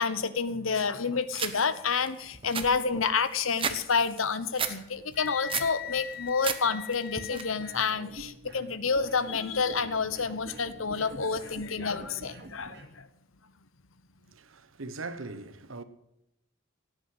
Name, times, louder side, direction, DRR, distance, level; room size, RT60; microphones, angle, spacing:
voice 1, 0.0-13.1, left 5 dB, 85° left, 1.1 m, -29 dB
sound 1, 1.3-1.5 2.0-2.1 2.3-3.8 4.1-4.7 5.1-5.7 6.1-6.6 6.9-7.4, right 6 dB, 25° right, 1.1 m, -32 dB
Wind instrument woodwind instrument, 5.1-8.0, left 10 dB, 45° left, 0.6 m, -41 dB
sound 2, 7.6-12.9, right 1 dB, 55° right, 2.9 m, -47 dB
voice 2, 14.3-15.8, right 3 dB, 80° right, 1.3 m, -40 dB
17.0 x 9.3 x 7.8 m
head